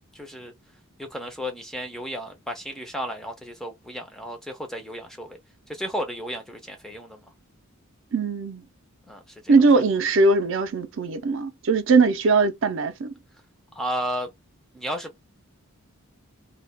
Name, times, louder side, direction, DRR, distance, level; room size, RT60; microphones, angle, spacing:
voice 1, 0.1-0.5 1.0-5.4 5.7-7.2 9.1-9.6 13.7-14.3 14.7-15.2, equal, ahead, 0.4 m, -33 dB
voice 2, 8.1-8.6 9.5-13.1, right 3 dB, 60° right, 0.4 m, -20 dB
2.2 x 2.1 x 3.4 m
head